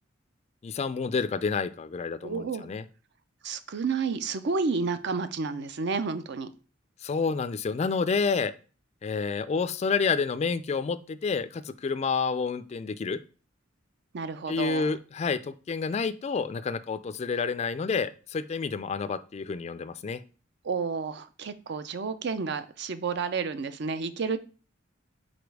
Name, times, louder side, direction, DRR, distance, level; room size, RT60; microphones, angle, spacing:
voice 1, 0.6-2.8 7.0-8.5 9.0-13.2 14.5-20.2, left 5 dB, 35° left, 14 dB, 0.3 m, -29 dB
voice 2, 2.2-2.7 3.4-6.5 14.1-14.9 20.6-24.4, right 4 dB, 60° right, 12 dB, 0.5 m, -31 dB
5.1 x 4.2 x 4.7 m, 0.37 s
head